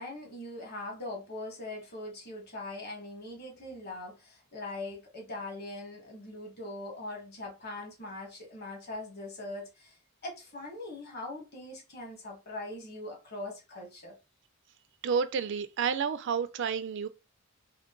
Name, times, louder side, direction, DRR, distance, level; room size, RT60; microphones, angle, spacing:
voice 1, 0.0-14.2, left 2 dB, 45° left, 1.3 m, -41 dB
voice 2, 15.0-17.1, right 6 dB, 55° right, 0.3 m, -30 dB
3.7 x 2.2 x 3.7 m
head